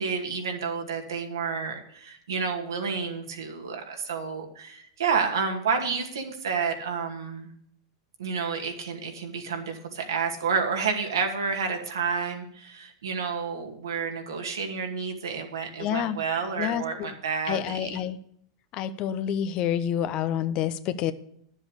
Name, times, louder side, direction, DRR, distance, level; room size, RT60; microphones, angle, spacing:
voice 1, 0.0-7.5 8.2-17.9, right 5 dB, 85° right, 3 dB, 2.3 m, -30 dB
voice 2, 15.8-16.2 16.6-17.1 17.5-18.2 18.7-21.1, left 10 dB, 45° left, 13 dB, 0.8 m, -28 dB
10.5 x 7.5 x 6.6 m, 0.67 s
hypercardioid pair, 110°, 2 cm